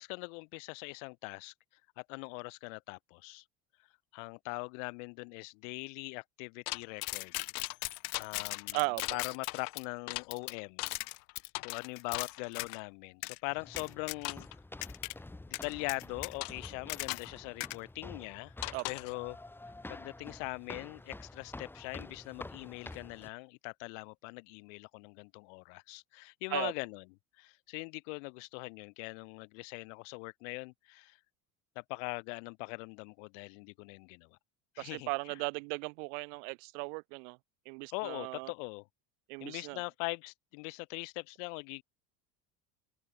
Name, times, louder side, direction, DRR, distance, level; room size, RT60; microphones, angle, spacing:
voice 1, 0.0-1.5 2.0-3.4 4.1-7.3 8.2-8.8 9.1-10.9 11.6-14.5 15.5-18.5 18.8-19.4 19.9-27.0 27.4-31.2 31.7-34.4 34.7-35.4 37.9-38.9 39.4-41.8, left 35 dB, 85° left, 3.4 m, -41 dB
sound 1, 6.7-12.8 13.2-13.4 13.8-14.5 14.8-15.1 15.5-17.3 17.6-17.8 18.6-19.1, left 38 dB, 70° left, 1.6 m, -38 dB
voice 2, 8.7-9.2 18.7-18.8 26.5-26.7 34.8-37.4 37.7-38.5 39.3-39.8, right 35 dB, 85° right, 2.7 m, -37 dB
sound 2, 13.5-23.3, left 2 dB, 5° left, 8.0 m, -49 dB
open air
cardioid pair, 175°, 36 cm